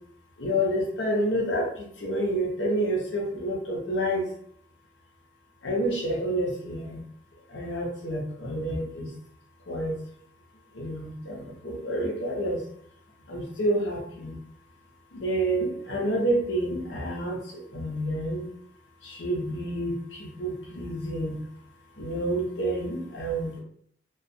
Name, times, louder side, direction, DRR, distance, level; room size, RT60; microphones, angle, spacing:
voice 1, 0.4-4.3 5.6-7.0 7.5-9.1 9.7-9.9 10.7-12.7 13.3-14.4 15.1-17.4 17.7-18.5 19.0-21.4 22.0-23.6, right 1 dB, 90° left, -1 dB, 0.8 m, -29 dB
2.3 x 2.2 x 2.6 m, 0.62 s
head